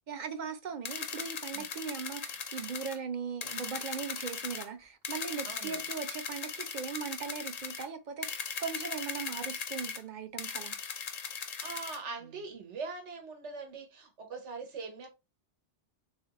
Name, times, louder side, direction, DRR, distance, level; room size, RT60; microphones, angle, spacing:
voice 1, 0.1-10.7, right 6 dB, 55° right, 0.6 m, -39 dB
sound 1, 0.8-3.0 3.4-4.7 5.0-7.9 8.2-10.0 10.4-12.0, left 6 dB, 50° left, 0.5 m, -39 dB
voice 2, 5.4-5.8 11.6-15.1, right 4 dB, 85° right, 1.3 m, -42 dB
3.7 x 3.2 x 2.9 m
omnidirectional pair, 1.2 m